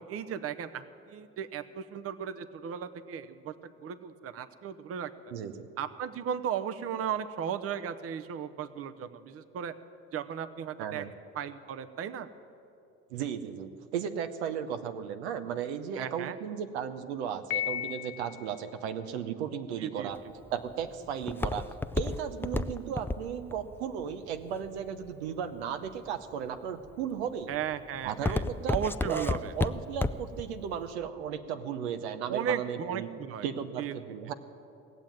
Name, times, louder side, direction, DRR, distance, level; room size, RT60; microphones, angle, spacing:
voice 1, 0.0-5.1 5.8-9.7 10.1-11.0 11.3-12.3 16.0-16.4 19.8-20.1 27.5-28.4 28.7-29.5 32.3-33.5 33.8-33.9, right 8 dB, 45° right, 12 dB, 0.8 m, -35 dB
voice 2, 5.3-5.7 10.8-11.1 13.1-20.2 20.5-21.7 21.9-27.5 28.0-28.8 29.1-29.3 29.6-33.1 33.4-34.3, right 8 dB, 90° right, 9 dB, 0.8 m, -35 dB
Piano, 17.5-18.6, left 12 dB, 45° left, 0.9 m, -34 dB
Walk footsteps, 20.1-25.3 25.9-26.3 26.8-27.2 27.5-30.4 30.8-30.9, left 2 dB, 5° left, 0.4 m, -31 dB
18.0 x 7.4 x 9.1 m, 2.7 s
supercardioid pair, 80°, 32 cm